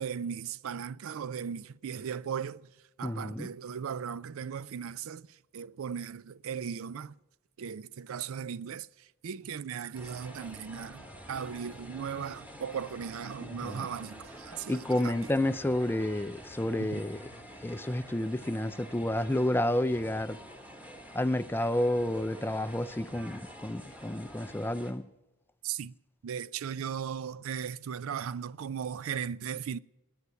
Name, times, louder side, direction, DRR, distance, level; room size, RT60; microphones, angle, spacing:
voice 1, 0.0-2.7 3.0-7.2 7.6-15.3 16.8-17.0 25.6-25.9 26.2-29.8, right 7 dB, 65° right, 0.4 m, -37 dB
voice 2, 3.0-3.5 13.4-13.9 14.7-17.2 17.6-20.4 21.1-25.0, left 1 dB, 10° left, 0.4 m, -30 dB
sound 1, 9.9-24.9, equal, 5° right, 1.3 m, -48 dB
18.0 x 9.5 x 6.9 m
head